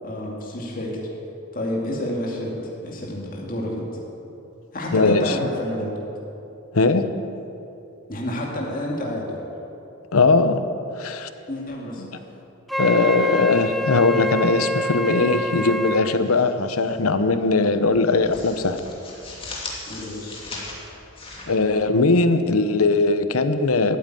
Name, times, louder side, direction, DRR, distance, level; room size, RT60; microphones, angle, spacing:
voice 1, 0.0-1.0 1.5-3.9 4.7-5.9 8.1-9.4 11.5-12.0 19.8-20.3, left 1 dB, 40° left, -2 dB, 2.4 m, -29 dB
voice 2, 4.9-5.4 6.7-7.0 10.1-10.6 11.0-11.3 12.0-12.1 12.8-18.8 21.5-24.0, left 3 dB, 85° left, 10 dB, 0.9 m, -19 dB
Wind instrument woodwind instrument, 12.7-16.1, left 1 dB, ahead, 0.4 m, -26 dB
sound 1, 16.1-17.0 17.3-17.5 17.9-22.3, left 2 dB, 25° left, 2.5 m, -38 dB
13.5 x 9.0 x 9.3 m, 2.8 s
head